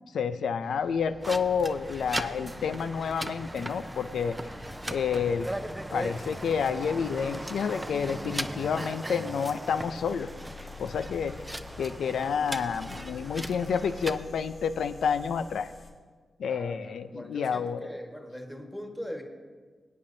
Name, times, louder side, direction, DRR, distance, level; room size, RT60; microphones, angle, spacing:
voice 1, 0.1-4.4 4.9-5.5 5.9-10.3 10.8-11.3 11.8-15.7 16.4-17.8, left 6 dB, 85° left, 10 dB, 0.5 m, -29 dB
sound 1, 0.6-15.9, left 6 dB, 60° left, 3.2 m, -49 dB
sound 2, 1.2-14.2, right 1 dB, 15° right, 0.5 m, -38 dB
voice 2, 16.5-19.2, equal, 5° left, 2 dB, 1.4 m, -41 dB
21.0 x 8.6 x 2.7 m, 1.5 s
cardioid pair, 60°, 0 cm